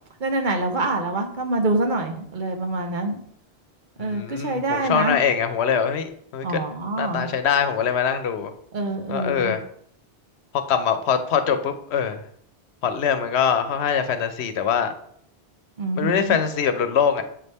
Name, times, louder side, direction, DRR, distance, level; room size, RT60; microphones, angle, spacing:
voice 1, 0.2-3.2 4.0-5.2 6.4-7.3 8.7-9.6 15.8-16.4, right 2 dB, 50° right, 4 dB, 0.8 m, -25 dB
voice 2, 4.0-6.5 7.0-8.5 9.1-9.6 10.7-12.2 12.8-14.9 16.0-17.2, left 7 dB, 85° left, 9 dB, 0.9 m, -23 dB
7.5 x 3.4 x 4.1 m, 0.66 s
omnidirectional pair, 1.1 m